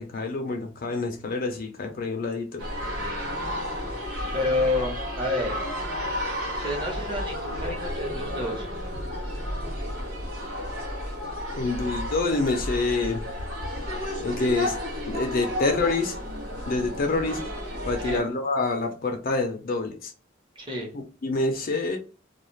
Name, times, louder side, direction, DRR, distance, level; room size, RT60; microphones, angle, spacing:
voice 1, 0.0-2.6 11.6-13.2 14.2-14.7 15.1-16.1 16.7-17.4 17.8-20.1 21.2-22.0, left 3 dB, 50° left, 0.5 m, -27 dB
sound 1, 2.6-18.2, equal, 90° right, 1.0 m, -32 dB
voice 2, 3.8-5.6 6.6-8.7 18.0-18.2 20.6-20.9, left 2 dB, 25° right, 1.0 m, -29 dB
2.3 x 2.3 x 3.1 m
head